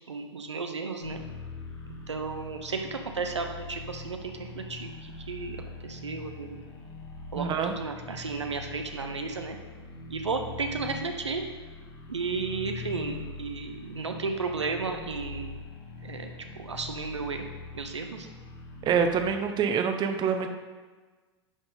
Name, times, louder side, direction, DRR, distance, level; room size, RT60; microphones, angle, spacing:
voice 1, 0.1-1.2 2.1-6.6 7.3-9.6 10.1-11.4 12.1-15.5 16.0-17.4 17.7-18.3, right 4 dB, 85° right, 5 dB, 0.8 m, -34 dB
sound 1, 1.0-19.3, left 4 dB, 65° left, 1.5 m, -43 dB
voice 2, 7.4-7.7 18.8-20.5, right 6 dB, 30° right, 6 dB, 0.7 m, -26 dB
11.0 x 4.3 x 4.0 m, 1.3 s
figure-of-eight pair, 90°, 14 cm